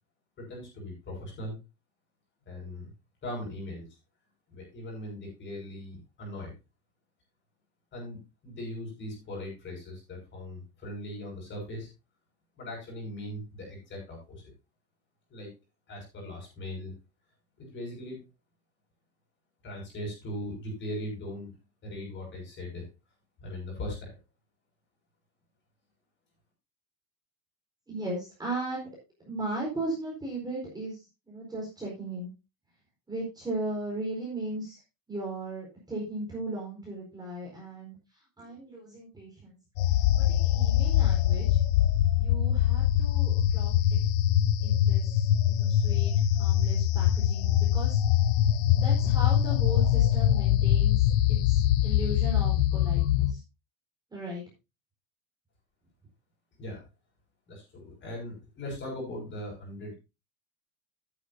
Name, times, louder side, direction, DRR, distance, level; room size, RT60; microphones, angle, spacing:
voice 1, 0.4-1.6 2.5-2.9 3.2-3.9 4.5-6.5 7.9-11.9 12.6-14.4 15.3-15.5 15.9-16.9 17.6-18.2 19.6-21.5 21.8-22.8 23.4-24.2 56.6-56.8 57.5-59.9, left 1 dB, 25° left, -1 dB, 6.3 m, -39 dB
voice 2, 27.9-28.9 29.2-32.3 33.1-34.8 35.1-37.9 38.4-39.6 40.1-41.6 42.2-44.0 44.6-48.0 48.7-53.4 54.1-54.4, right 2 dB, 10° right, -4 dB, 4.4 m, -37 dB
sound 1, 39.8-53.3, left 11 dB, 90° left, 0.8 m, -23 dB
13.0 x 9.9 x 2.7 m, 0.27 s
cardioid pair, 170°, 42 cm